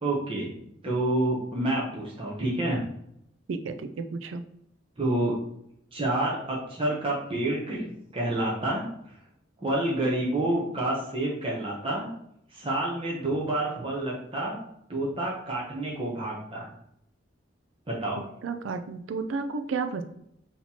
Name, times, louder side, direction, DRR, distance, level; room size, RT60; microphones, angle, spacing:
voice 1, 0.0-0.5 0.8-2.8 5.0-5.4 5.9-8.9 9.6-12.1 12.5-14.6 14.9-16.7 17.9-18.2, right 1 dB, 30° right, -4 dB, 0.8 m, -28 dB
voice 2, 3.5-4.4 18.1-20.0, right 4 dB, 75° right, 7 dB, 0.4 m, -32 dB
5.6 x 2.9 x 2.8 m, 0.75 s
head